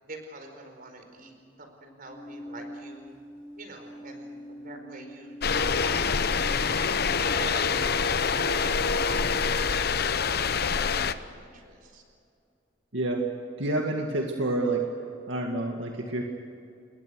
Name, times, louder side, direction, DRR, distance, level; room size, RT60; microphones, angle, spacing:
voice 1, 0.0-3.1 3.5-5.4 5.6-6.6 7.3-12.0, right 2 dB, 50° right, 5 dB, 4.7 m, -45 dB
sound 1, 2.0-6.9, equal, 25° left, 4.2 m, -44 dB
sound 2, 5.4-11.1, left 5 dB, 55° left, 0.9 m, -26 dB
voice 2, 12.9-13.2 13.6-14.8 15.3-16.2, right 2 dB, 75° right, 1 dB, 2.1 m, -28 dB
28.0 x 22.0 x 6.5 m, 2.5 s
head